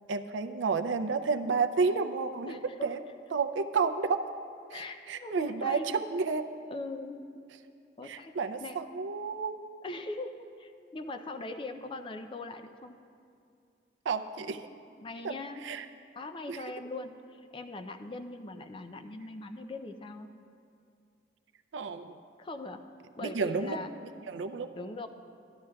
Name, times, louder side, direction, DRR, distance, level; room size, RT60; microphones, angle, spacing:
voice 1, 0.1-3.0 3.3-4.2 4.7-6.5 8.0-9.5 14.1-14.6 15.2-15.3 15.6-15.9 16.5-16.6 21.7-22.2 23.2-23.8 24.3-24.7, right 4 dB, 85° right, 9 dB, 0.4 m, -31 dB
voice 2, 2.5-2.9 4.7-5.9 6.7-7.3 8.0-8.3 8.6-8.8 9.8-12.9 15.0-15.7 16.1-20.3 22.4-22.9 23.2-23.9 24.7-25.1, left 2 dB, 25° left, 8 dB, 0.4 m, -41 dB
13.5 x 10.5 x 2.3 m, 2.4 s
head